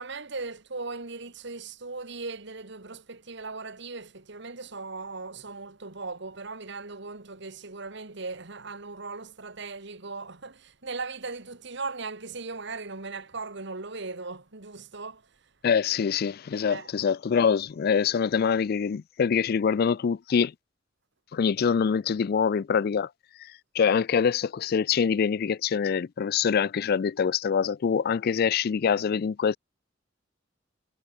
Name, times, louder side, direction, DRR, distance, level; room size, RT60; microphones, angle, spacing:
voice 1, 0.0-15.2 16.7-16.9, right 3 dB, 65° right, 2.0 m, -38 dB
voice 2, 15.6-20.5 21.3-23.1 23.4-29.6, left 6 dB, 55° left, 0.4 m, -25 dB
head